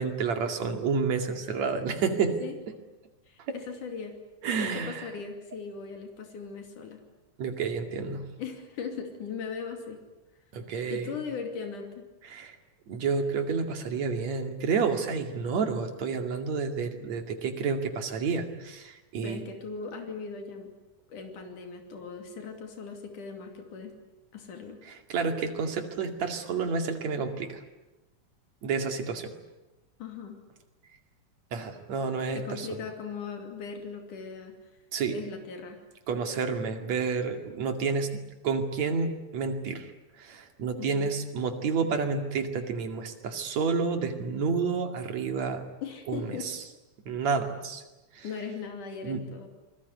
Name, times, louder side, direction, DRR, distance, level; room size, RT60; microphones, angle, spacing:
voice 1, 0.0-2.4 4.4-5.1 7.4-8.2 10.5-11.2 12.3-12.6 12.9-19.5 25.1-27.6 28.6-29.3 31.5-32.7 34.9-35.2 36.1-39.9 40.2-45.6 46.1-46.6 47.1-47.8 48.1-48.3 49.0-49.2, right 5 dB, 65° right, 6 dB, 3.6 m, -30 dB
voice 2, 3.3-4.1 4.6-7.0 8.4-10.0 10.9-12.1 19.2-20.7 21.1-23.9 24.3-24.8 30.0-30.4 32.3-34.5 35.1-35.8 40.8-41.1 45.8-46.5 48.2-49.5, left 5 dB, 90° left, 4 dB, 4.2 m, -39 dB
28.0 x 21.5 x 9.6 m, 1.0 s
omnidirectional pair, 3.5 m